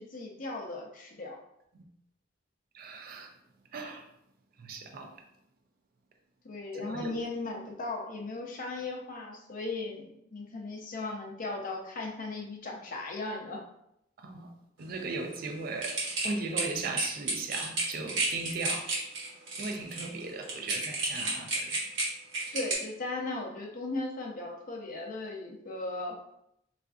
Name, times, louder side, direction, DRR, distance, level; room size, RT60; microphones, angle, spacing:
voice 1, 0.0-1.4 6.4-13.6 22.5-26.1, left 2 dB, 45° left, 1 dB, 0.6 m, -37 dB
voice 2, 2.7-3.3 3.7-4.1 4.6-5.2 6.7-7.2 14.2-14.5 14.8-18.9 19.6-21.8, right 3 dB, 50° right, 4 dB, 0.4 m, -37 dB
sound 1, 15.8-22.7, right 2 dB, 80° right, 1.0 m, -31 dB
3.5 x 2.4 x 2.3 m, 0.78 s
head